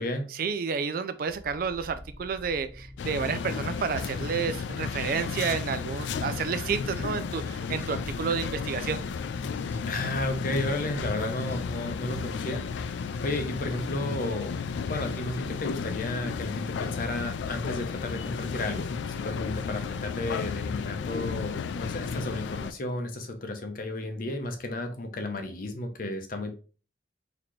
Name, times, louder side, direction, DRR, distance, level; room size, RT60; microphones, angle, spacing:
voice 1, 0.3-9.0, right 6 dB, 55° right, 0.3 m, -30 dB
sound 1, 1.3-17.0 18.2-18.8, left 1 dB, 15° left, 0.4 m, -46 dB
sound 2, 3.0-22.7, left 5 dB, 85° left, 0.3 m, -33 dB
voice 2, 9.9-12.9 13.2-14.6 14.9-26.5, left 2 dB, 50° left, 0.7 m, -33 dB
4.1 x 2.8 x 3.0 m
head